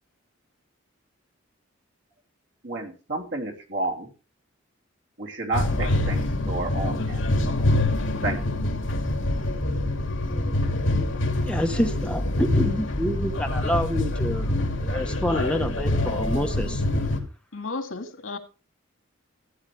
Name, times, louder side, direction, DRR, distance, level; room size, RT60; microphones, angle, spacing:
voice 1, 2.6-4.1 5.2-7.2 8.2-8.6, right 2 dB, 60° right, 3.1 m, -31 dB
sound 1, 5.5-17.2, left 1 dB, 65° left, 2.6 m, -25 dB
voice 2, 11.5-14.5 14.8-16.8, equal, 5° left, 1.1 m, -27 dB
voice 3, 17.5-18.4, left 3 dB, 80° left, 2.0 m, -33 dB
16.0 x 9.0 x 3.4 m
head